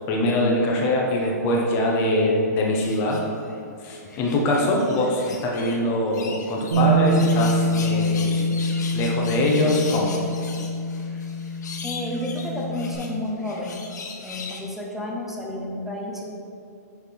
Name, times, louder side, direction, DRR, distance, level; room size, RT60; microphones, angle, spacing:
voice 1, 0.1-3.2 3.8-8.6 8.9-10.1, left 1 dB, 25° left, -1 dB, 0.9 m, -23 dB
sound 1, 2.8-3.6 4.0-5.8 6.1-14.6, left 5 dB, 80° left, 0.9 m, -39 dB
Bass guitar, 6.7-13.0, right 1 dB, 85° right, 1.4 m, -25 dB
voice 2, 11.8-13.8 14.2-16.4, left 1 dB, ahead, -3 dB, 0.6 m, -31 dB
6.8 x 3.6 x 4.6 m, 2.5 s
hypercardioid pair, 155°, 9 cm